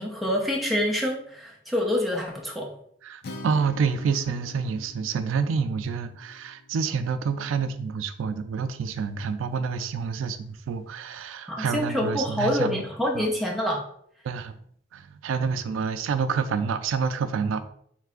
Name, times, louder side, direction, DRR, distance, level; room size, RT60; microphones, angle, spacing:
voice 1, 0.0-2.8 11.5-13.8, left 1 dB, ahead, -1 dB, 0.5 m, -26 dB
voice 2, 3.0-12.8 13.1-13.3 14.2-14.5 14.9-17.7, right 5 dB, 90° right, 11 dB, 0.3 m, -28 dB
Acoustic guitar, 3.2-7.5, left 2 dB, 50° left, 0.5 m, -44 dB
3.3 x 3.2 x 3.6 m, 0.67 s
head